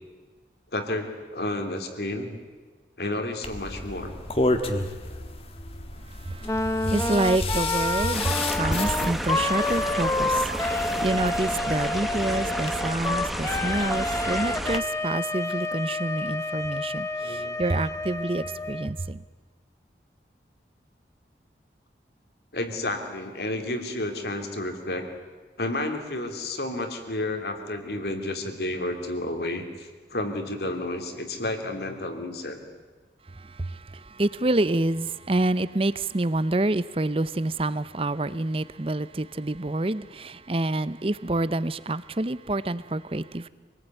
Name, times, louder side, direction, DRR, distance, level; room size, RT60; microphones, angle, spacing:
voice 1, 0.7-2.4 3.0-4.1 17.2-17.6 22.5-25.1 25.6-32.6, left 1 dB, 65° left, 3.1 m, -31 dB
sound 1, 3.4-14.8, left 2 dB, 35° left, 1.6 m, -33 dB
voice 2, 6.2-19.2 33.6-43.5, right 2 dB, 30° right, 0.7 m, -27 dB
Wind instrument woodwind instrument, 6.4-18.9, left 2 dB, 15° left, 0.8 m, -29 dB
sound 2, 8.1-14.8, equal, ahead, 1.0 m, -32 dB
26.0 x 19.5 x 9.2 m
head